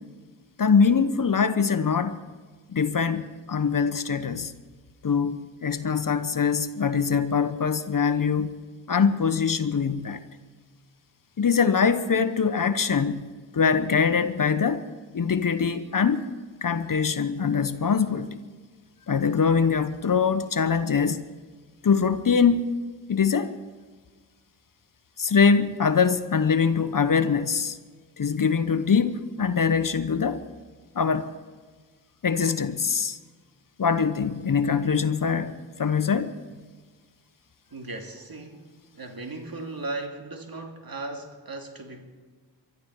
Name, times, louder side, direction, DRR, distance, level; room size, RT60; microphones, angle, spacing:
voice 1, 0.6-2.2 2.7-4.5 5.0-8.6 8.9-10.2 11.4-13.2 13.5-14.9 15.1-16.2 16.6-18.4 19.1-21.2 21.8-22.7 23.1-23.5 25.2-27.8 28.2-30.4 30.9-31.3 32.2-33.2 33.8-36.4, left 6 dB, 45° left, 1.0 m, -23 dB
voice 2, 37.7-42.0, right 2 dB, 50° right, 2.7 m, -37 dB
23.5 x 13.0 x 4.7 m
supercardioid pair, 40°, 45 cm